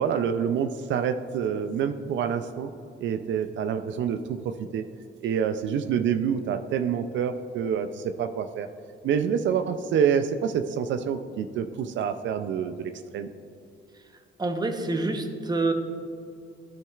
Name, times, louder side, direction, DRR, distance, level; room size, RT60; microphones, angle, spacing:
voice 1, 0.0-2.7 3.0-4.2 4.4-4.8 5.2-8.7 9.0-13.3, right 7 dB, 70° right, 8 dB, 0.4 m, -27 dB
voice 2, 14.4-15.7, right 2 dB, 20° right, 5 dB, 0.9 m, -27 dB
11.5 x 6.3 x 2.4 m, 2.6 s
cardioid pair, 90°, 20 cm